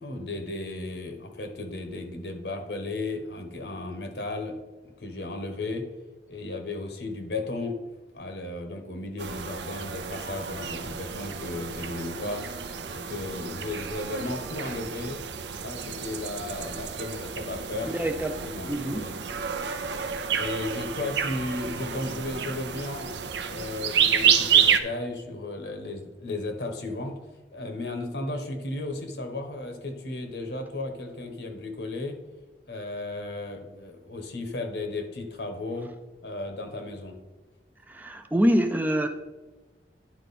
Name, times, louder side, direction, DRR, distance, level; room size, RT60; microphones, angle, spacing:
voice 1, 0.0-4.6 5.0-5.9 6.3-7.8 8.1-12.4 12.9-15.2 15.6-17.9 18.4-19.2 20.0-20.1 20.3-23.1 23.4-27.2 27.5-32.2 32.7-35.9 36.2-37.2, left 2 dB, 70° left, 5 dB, 1.1 m, -34 dB
sound 1, 9.2-24.8, right 7 dB, 80° right, 0.6 m, -29 dB
voice 2, 17.9-18.4 18.7-19.0 37.9-39.1, equal, 10° right, 6 dB, 0.4 m, -25 dB
10.5 x 4.5 x 4.2 m, 1.2 s
head